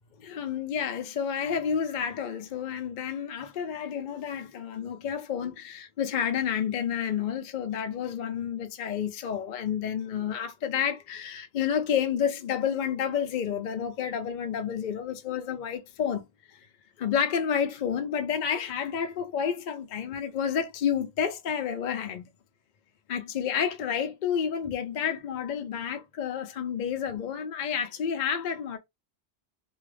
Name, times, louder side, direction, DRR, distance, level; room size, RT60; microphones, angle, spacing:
voice 1, 0.2-16.2 17.0-22.2 23.1-28.8, left 8 dB, 55° left, 0.5 m, -30 dB
2.7 x 2.4 x 3.2 m
omnidirectional pair, 1.1 m